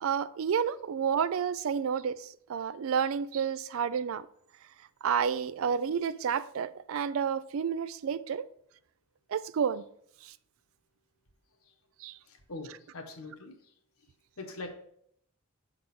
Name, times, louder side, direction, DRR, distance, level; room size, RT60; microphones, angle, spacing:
voice 1, 0.0-4.3 5.0-8.4 9.3-9.8 10.2-10.3 12.0-12.2, right 7 dB, 65° right, 0.4 m, -30 dB
voice 2, 12.3-13.5 14.4-14.7, left 2 dB, 90° left, 1.2 m, -42 dB
5.8 x 3.9 x 6.0 m
head